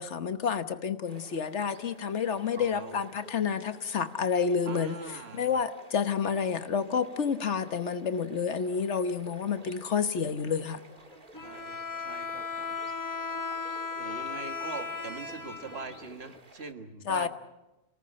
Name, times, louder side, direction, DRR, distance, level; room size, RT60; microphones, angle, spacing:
voice 1, 0.0-4.9 5.3-10.8 17.1-17.3, left 6 dB, 75° left, 11 dB, 1.4 m, -29 dB
sound 1, 1.1-16.7, right 1 dB, 45° right, 2.5 m, -53 dB
voice 2, 2.5-3.0 4.7-5.5 11.3-12.8 14.0-17.3, right 4 dB, 60° right, 8 dB, 1.8 m, -42 dB
Bowed string instrument, 11.3-16.4, left 5 dB, 15° left, 1.2 m, -36 dB
27.5 x 18.5 x 8.8 m, 1.0 s
omnidirectional pair, 1.2 m